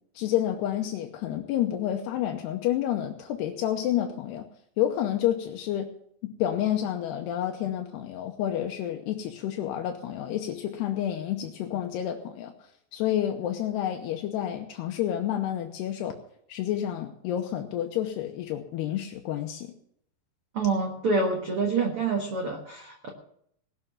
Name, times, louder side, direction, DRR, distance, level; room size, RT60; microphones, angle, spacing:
voice 1, 0.2-4.5 4.8-5.9 6.2-16.2 16.5-19.7, left 11 dB, 80° left, 3 dB, 2.9 m, -29 dB
voice 2, 20.5-23.1, right 3 dB, 60° right, 1 dB, 1.5 m, -27 dB
19.0 x 6.9 x 7.2 m, 0.69 s
omnidirectional pair, 4.9 m